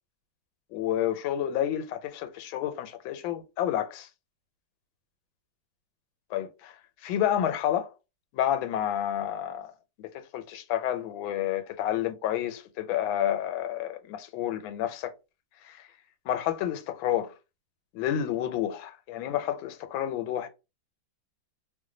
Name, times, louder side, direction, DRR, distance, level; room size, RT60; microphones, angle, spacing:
voice 1, 0.7-4.1 6.3-6.7 7.0-7.9 8.3-9.7 10.0-15.1 15.6-15.9 16.3-17.3 17.9-20.5, left 11 dB, 85° left, 1.3 m, -30 dB
3.1 x 2.1 x 3.7 m
omnidirectional pair, 2.1 m